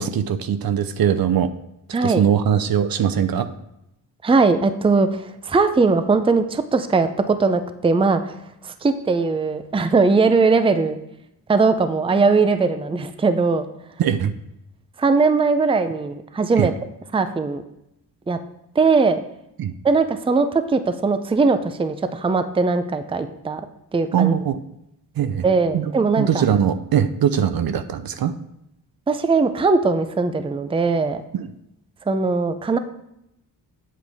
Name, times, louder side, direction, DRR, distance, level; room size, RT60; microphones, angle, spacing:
voice 1, 0.0-1.5 2.0-3.5 14.0-14.3 16.6-16.7 19.6-19.7 24.1-24.6 25.2-25.4 25.7-28.3 31.3-31.5, right 8 dB, 60° right, 12 dB, 0.6 m, -21 dB
voice 2, 1.9-2.2 4.2-8.3 8.6-11.0 11.5-13.7 15.0-16.7 17.1-17.6 18.3-18.4 18.8-19.2 19.8-23.6 23.9-24.3 25.4-26.4 29.1-31.2 32.1-32.8, right 4 dB, 15° right, 10 dB, 0.5 m, -19 dB
8.0 x 7.5 x 3.4 m, 0.81 s
cardioid pair, 95°, 40 cm